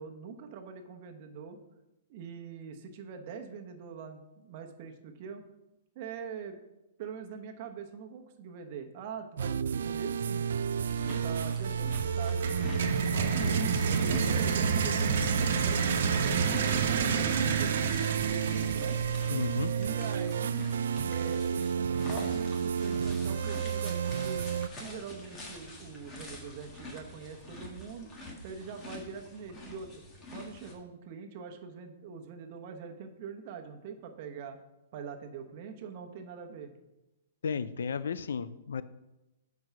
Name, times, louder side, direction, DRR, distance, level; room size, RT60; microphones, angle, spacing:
voice 1, 0.0-1.6 2.1-5.4 5.9-6.6 7.0-10.5 11.0-13.6 14.1-19.0 19.7-20.7 21.1-24.5 24.8-28.1 28.4-30.0 30.3-34.6 34.9-36.7, right 6 dB, 40° right, 5 dB, 1.0 m, -43 dB
sound 1, 9.4-24.7, right 7 dB, 80° right, 0.3 m, -31 dB
sound 2, 10.9-30.7, left 1 dB, 20° left, 1.7 m, -45 dB
sound 3, 12.4-20.2, right 5 dB, 65° right, 1.1 m, -31 dB
voice 2, 19.3-19.7 37.4-38.8, left 6 dB, 85° left, 15 dB, 0.4 m, -33 dB
7.9 x 4.7 x 5.9 m, 0.96 s
hypercardioid pair, 155°, 0 cm